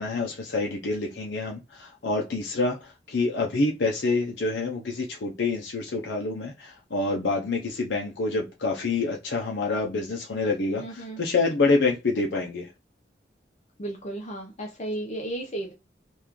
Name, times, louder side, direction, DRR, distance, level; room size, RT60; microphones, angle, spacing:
voice 1, 0.0-12.7, left 3 dB, 85° left, 0.6 m, -27 dB
voice 2, 10.8-11.2 13.8-15.7, right 1 dB, 40° left, 0.6 m, -34 dB
3.0 x 2.4 x 3.6 m
head